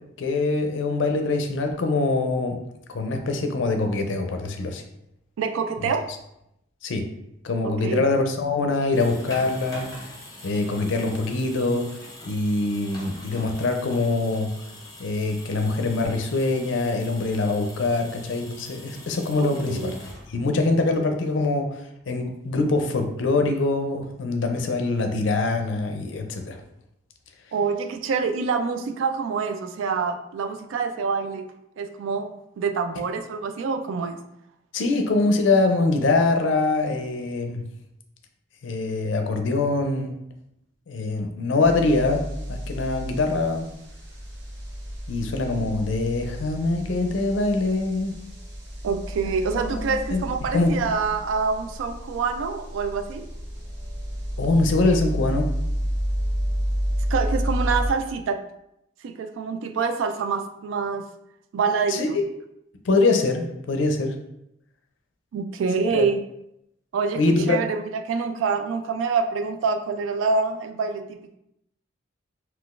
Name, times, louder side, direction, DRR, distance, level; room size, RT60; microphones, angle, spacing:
voice 1, 0.2-2.6 2.9-4.8 6.8-7.1 7.4-10.1 10.4-11.9 12.3-14.5 15.0-20.0 20.3-26.6 34.7-37.6 38.6-40.2 40.9-42.2 42.5-43.7 45.1-48.2 49.6-50.2 50.5-50.7 54.4-55.5 61.9-62.1 62.8-64.1 65.9-66.0 67.1-67.6, left 3 dB, 70° left, 5 dB, 0.4 m, -24 dB
voice 2, 5.4-6.1 7.6-8.0 19.4-19.9 27.5-31.4 31.8-34.2 48.8-53.3 57.1-58.4 59.0-61.0 61.5-62.2 65.3-66.2 66.9-67.2 67.5-71.4, right 5 dB, 80° right, 8 dB, 0.3 m, -26 dB
sound 1, 8.7-20.6, left 1 dB, 20° left, 0.7 m, -43 dB
sound 2, 41.6-57.9, equal, 60° right, 0.8 m, -31 dB
3.7 x 2.3 x 2.4 m, 0.82 s
head